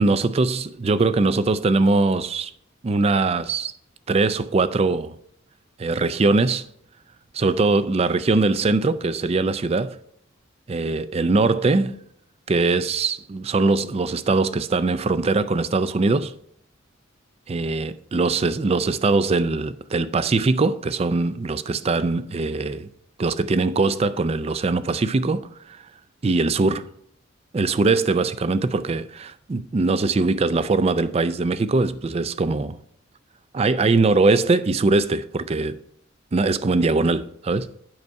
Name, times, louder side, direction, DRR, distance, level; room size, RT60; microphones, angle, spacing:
voice 1, 0.0-2.5 2.8-3.7 4.1-5.1 5.8-6.7 7.3-10.0 10.7-12.0 12.5-16.3 17.5-22.9 23.2-25.5 26.2-26.8 27.5-32.8 33.5-35.8 36.3-37.7, right 3 dB, 30° right, 0.4 m, -21 dB
7.8 x 5.4 x 4.6 m
head